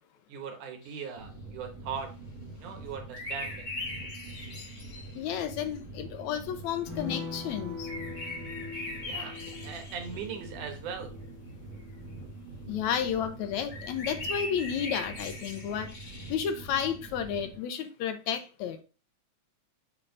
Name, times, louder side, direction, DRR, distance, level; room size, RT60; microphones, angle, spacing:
voice 1, 0.3-2.1 2.6-3.7 9.0-11.1, right 6 dB, 85° right, 2.7 m, -39 dB
sound 1, 0.8-1.0 3.1-5.2 7.8-10.3 13.7-16.6, left 2 dB, 40° left, 1.4 m, -40 dB
sound 2, 1.2-17.6, right 2 dB, 55° right, 2.8 m, -45 dB
voice 2, 5.2-7.9 12.7-15.9 16.3-18.8, left 8 dB, 80° left, 1.9 m, -32 dB
sound 3, 6.9-13.6 13.9-14.0 14.4-14.6, left 4 dB, 5° left, 0.9 m, -43 dB
6.9 x 3.6 x 3.8 m
omnidirectional pair, 3.5 m